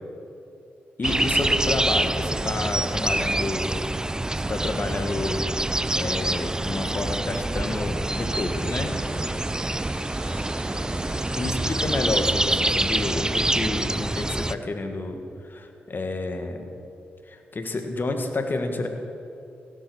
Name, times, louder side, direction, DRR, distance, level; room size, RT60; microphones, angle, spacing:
voice 1, 1.0-3.8 4.5-5.4 5.9-8.9 11.4-16.7 17.3-18.9, left 2 dB, 45° left, 5 dB, 1.8 m, -29 dB
sound 1, 1.0-14.6, right 1 dB, 15° right, 0.5 m, -26 dB
Thunder / Rain, 8.1-13.1, right 2 dB, 40° right, 1.7 m, -41 dB
17.0 x 7.8 x 6.4 m, 2.6 s
supercardioid pair, 45°, 5 cm